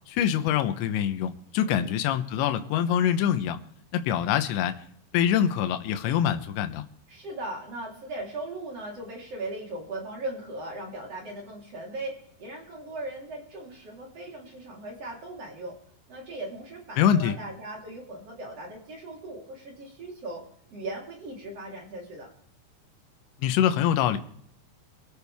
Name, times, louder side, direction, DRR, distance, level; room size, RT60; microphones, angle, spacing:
voice 1, 0.1-3.6 3.9-4.8 5.1-6.9 17.0-17.4 23.4-24.2, left 9 dB, 75° left, 8 dB, 3.1 m, -24 dB
voice 2, 7.1-15.8 16.1-20.4 20.7-22.3, right 2 dB, 35° right, -1 dB, 4.1 m, -38 dB
25.0 x 12.5 x 3.5 m, 0.66 s
omnidirectional pair, 5.5 m